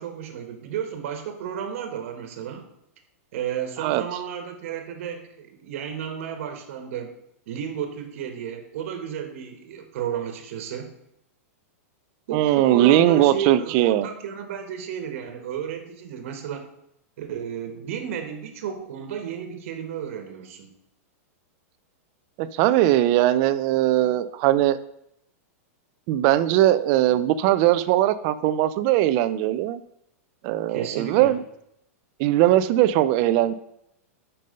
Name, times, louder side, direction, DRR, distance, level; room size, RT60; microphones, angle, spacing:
voice 1, 0.0-2.6 3.3-7.1 7.5-10.9 12.3-16.7 17.2-20.7 30.7-31.4, right 8 dB, 60° right, 6 dB, 1.4 m, -33 dB
voice 2, 12.3-14.1 22.4-24.8 26.1-29.8 30.4-31.4 32.2-33.5, right 13 dB, 40° right, 13 dB, 0.5 m, -20 dB
7.4 x 5.4 x 5.3 m, 0.77 s
supercardioid pair, 145°, 8 cm